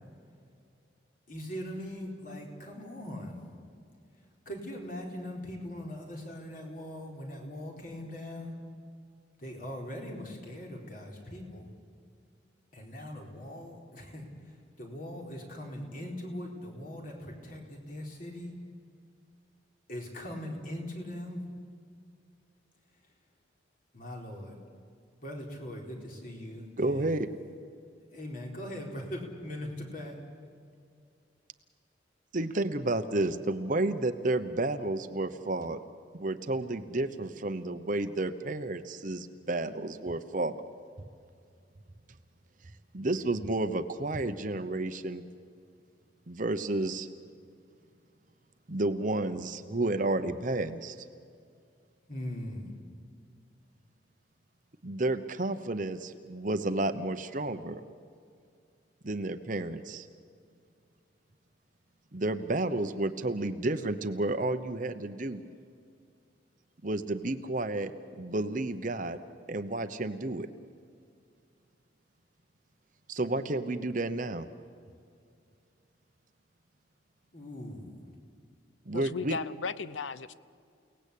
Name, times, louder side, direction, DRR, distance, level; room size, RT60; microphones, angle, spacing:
voice 1, 1.3-3.5 4.4-8.5 9.4-11.7 12.7-18.5 19.9-21.4 23.9-24.5 25.2-27.2 28.1-30.2 52.1-52.7 77.3-78.0, left 1 dB, 45° left, 0 dB, 4.4 m, -41 dB
voice 2, 26.8-27.3 32.3-33.3 33.7-35.8 36.1-40.6 42.9-45.2 46.3-47.1 48.7-51.0 54.8-57.8 59.0-60.1 62.1-65.5 66.8-67.9 68.2-69.2 69.5-70.5 73.1-74.5 78.9-79.4, right 2 dB, 40° right, 9 dB, 0.9 m, -31 dB
voice 3, 78.9-80.3, left 5 dB, 75° left, 15 dB, 0.7 m, -35 dB
29.5 x 18.5 x 8.5 m, 2.3 s
head